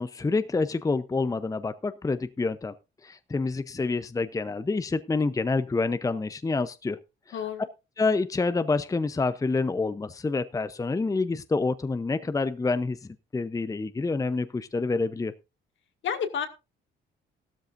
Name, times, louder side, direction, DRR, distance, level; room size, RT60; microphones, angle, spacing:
voice 1, 0.0-2.7 3.0-7.0 7.3-7.4 8.0-13.0 13.3-15.3, left 3 dB, 15° left, 12 dB, 0.7 m, -27 dB
voice 2, 7.3-7.7 16.0-16.5, left 7 dB, 70° left, 7 dB, 1.9 m, -30 dB
15.0 x 13.0 x 2.6 m, 0.26 s
cardioid pair, 90°, 20 cm